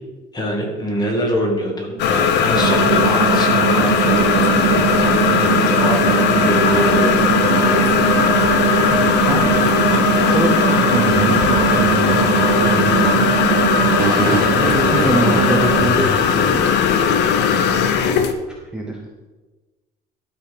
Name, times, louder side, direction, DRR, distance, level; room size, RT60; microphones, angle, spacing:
voice 1, 0.3-5.5 5.8-7.9, equal, 20° left, 1 dB, 1.9 m, -24 dB
sound 1, 2.0-18.3, left 7 dB, 70° left, 0.8 m, -18 dB
sound 2, 2.5-15.9, right 9 dB, 50° right, 1.1 m, -20 dB
voice 2, 9.3-13.2 14.1-16.7 17.5-18.3 18.7-19.0, right 1 dB, 5° right, -1 dB, 0.9 m, -25 dB
12.0 x 5.0 x 5.0 m, 1.2 s
cardioid pair, 150°, 18 cm